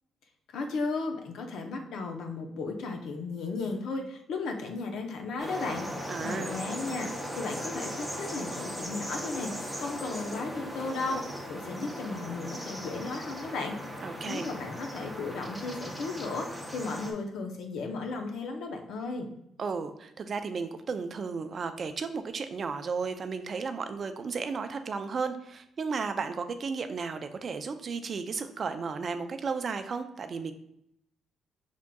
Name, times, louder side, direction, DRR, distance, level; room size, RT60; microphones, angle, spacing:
voice 1, 0.5-13.8 14.3-19.3, left 3 dB, 75° left, 3 dB, 0.6 m, -35 dB
sound 1, 5.4-17.1, equal, ahead, 0.8 m, -38 dB
voice 2, 6.1-6.5 14.0-14.5 19.6-30.5, right 5 dB, 45° right, 9 dB, 0.4 m, -34 dB
5.0 x 3.6 x 2.2 m, 0.76 s
cardioid pair, 90°, 0 cm